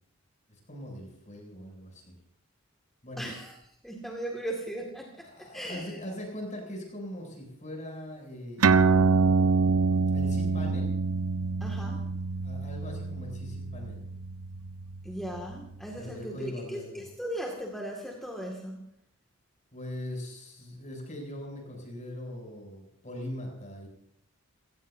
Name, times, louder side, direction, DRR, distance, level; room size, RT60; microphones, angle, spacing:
voice 1, 0.5-2.2 3.0-3.3 5.2-9.3 10.1-10.9 12.4-14.0 16.0-17.0 19.7-23.9, left 1 dB, 35° left, 1 dB, 7.8 m, -41 dB
voice 2, 3.2-3.6 3.8-6.0 11.6-12.1 15.0-18.8, right 1 dB, ahead, -2 dB, 2.2 m, -38 dB
sound 1, 8.6-15.5, right 4 dB, 85° right, 0.9 m, -26 dB
29.0 x 18.0 x 2.8 m, 0.74 s
head